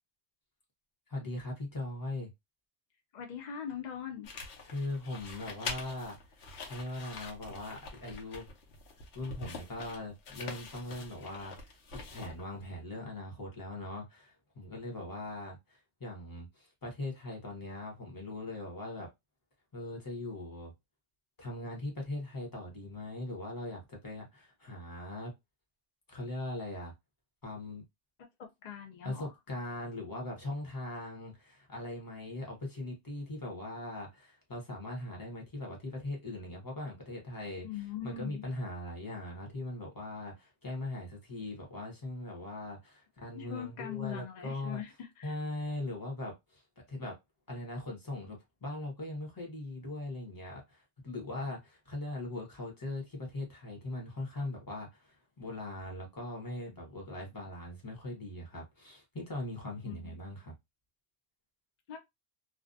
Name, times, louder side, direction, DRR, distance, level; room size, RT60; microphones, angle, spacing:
voice 1, 1.1-2.3 4.6-6.3 6.7-8.5 9.1-19.1 19.7-20.7 21.4-25.3 26.1-26.9 27.4-27.8 29.0-37.7 38.0-44.8 45.2-46.6 46.9-47.2 47.5-60.5, left 2 dB, 20° left, 0.8 m, -40 dB
voice 2, 3.1-4.3 28.4-29.3 37.6-38.4 43.3-45.4 59.8-60.2 61.9-62.0, left 9 dB, 55° left, 0.5 m, -41 dB
sound 1, 4.2-12.6, left 3 dB, 75° left, 0.9 m, -45 dB
2.4 x 2.2 x 2.5 m
omnidirectional pair, 1.2 m